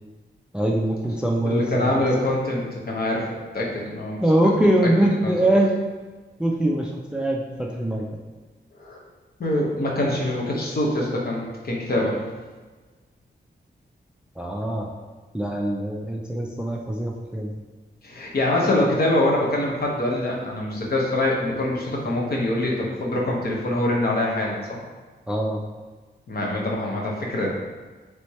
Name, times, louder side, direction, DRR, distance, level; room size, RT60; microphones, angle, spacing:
voice 1, 0.5-1.9 4.2-5.7 6.4-8.0 14.4-14.9 15.3-17.5 25.3-25.6, right 1 dB, 5° right, 0 dB, 0.3 m, -23 dB
voice 2, 1.4-3.2 3.5-4.2 5.2-5.4 8.8-9.0 9.4-12.2 18.0-24.8 26.3-27.6, left 1 dB, 55° left, -2 dB, 0.9 m, -24 dB
3.4 x 3.2 x 4.1 m, 1.3 s
wide cardioid pair, 155°, 19 cm